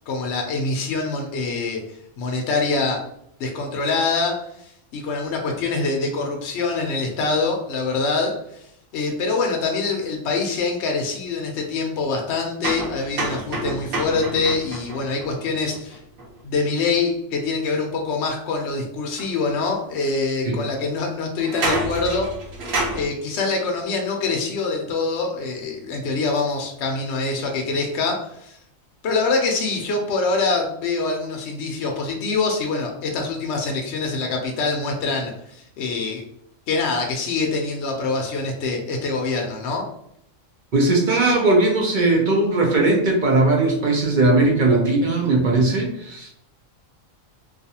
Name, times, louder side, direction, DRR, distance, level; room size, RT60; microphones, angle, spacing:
voice 1, 0.1-3.0 3.4-16.0 16.4-22.3 22.9-28.6 29.0-36.2 36.7-39.8, left 3 dB, 65° left, 1 dB, 0.8 m, -25 dB
sound 1, 12.6-16.4 19.2-19.3 20.1-20.2 21.4-23.1, right 2 dB, 75° right, 1.1 m, -28 dB
voice 2, 40.7-46.3, right 2 dB, 55° right, -1 dB, 0.5 m, -18 dB
2.5 x 2.4 x 2.7 m, 0.72 s
omnidirectional pair, 1.3 m